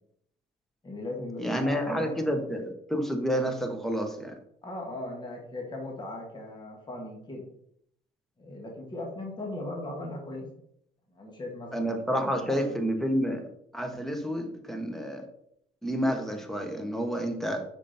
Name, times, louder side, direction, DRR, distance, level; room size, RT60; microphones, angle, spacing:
voice 1, 0.8-2.6 4.6-7.5 8.4-10.5 11.1-12.8, left 2 dB, 25° left, 0 dB, 1.9 m, -38 dB
voice 2, 1.4-4.3 11.7-13.5 13.7-15.3 15.8-17.6, equal, ahead, 5 dB, 1.3 m, -29 dB
7.0 x 5.8 x 4.3 m, 0.73 s
cardioid pair, 110°, 17 cm